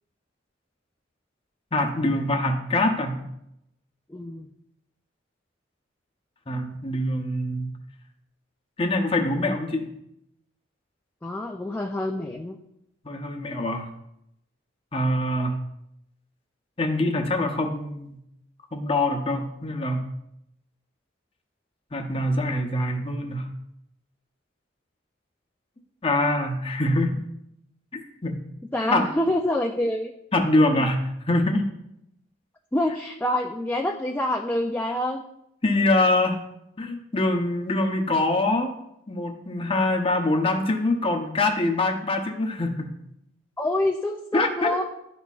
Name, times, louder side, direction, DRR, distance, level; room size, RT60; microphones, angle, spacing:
voice 1, 1.7-3.2 6.5-7.7 8.8-9.8 13.0-13.8 14.9-15.6 16.8-18.2 18.7-20.0 21.9-23.5 26.0-27.2 27.9-28.4 28.9-29.1 30.3-31.6 35.6-36.4 36.8-38.7 39.1-42.9 44.3-44.7, left 2 dB, 30° left, 4 dB, 0.7 m, -24 dB
voice 2, 4.1-4.5 11.2-12.6 28.7-30.1 30.7-30.8 32.7-35.2 43.6-44.8, left 1 dB, 10° left, 1 dB, 0.3 m, -26 dB
12.0 x 4.2 x 2.4 m, 0.80 s
head